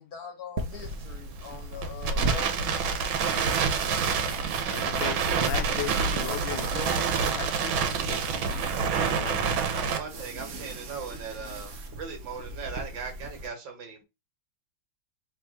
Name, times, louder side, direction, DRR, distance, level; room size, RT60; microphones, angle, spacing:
voice 1, 0.0-4.0, left 6 dB, 55° left, 1.3 m, -43 dB
sound 1, 0.6-13.5, right 2 dB, 55° right, 0.9 m, -38 dB
Crackle, 0.7-10.0, right 6 dB, 90° right, 1.6 m, -28 dB
voice 2, 4.7-8.6 8.9-9.6, left 12 dB, 85° left, 1.4 m, -37 dB
voice 3, 9.6-14.0, right 5 dB, 70° right, 2.0 m, -39 dB
3.5 x 3.2 x 4.6 m
omnidirectional pair, 2.2 m